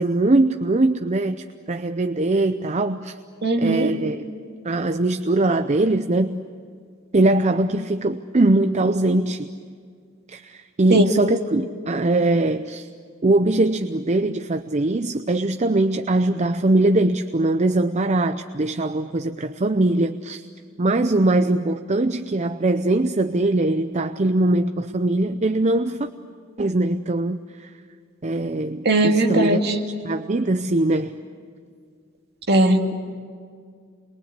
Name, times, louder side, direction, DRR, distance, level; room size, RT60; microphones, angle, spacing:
voice 1, 0.0-3.1 3.6-4.2 4.6-6.4 7.1-9.5 10.3-12.9 13.2-20.4 20.8-26.1 26.6-27.7 28.2-29.6 30.0-31.2, right 2 dB, 30° right, 8 dB, 0.6 m, -21 dB
voice 2, 3.4-3.9 10.9-11.1 28.9-29.8 32.5-33.0, right 1 dB, 50° right, 2 dB, 2.3 m, -18 dB
28.5 x 22.5 x 8.3 m, 2.1 s
head